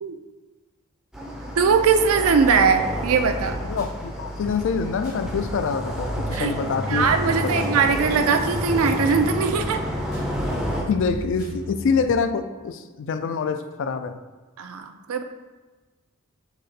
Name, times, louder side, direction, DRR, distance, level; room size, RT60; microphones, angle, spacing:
sound 1, 1.1-10.8, equal, ahead, 0.5 m, -29 dB
voice 1, 1.6-3.6 6.3-9.8 14.6-15.2, right 5 dB, 75° right, 7 dB, 0.4 m, -21 dB
sound 2, 3.4-12.1, left 1 dB, 80° left, 1.2 m, -37 dB
voice 2, 3.7-7.7 10.9-14.2, left 5 dB, 60° left, 9 dB, 0.3 m, -26 dB
4.1 x 3.3 x 4.0 m, 1.2 s
head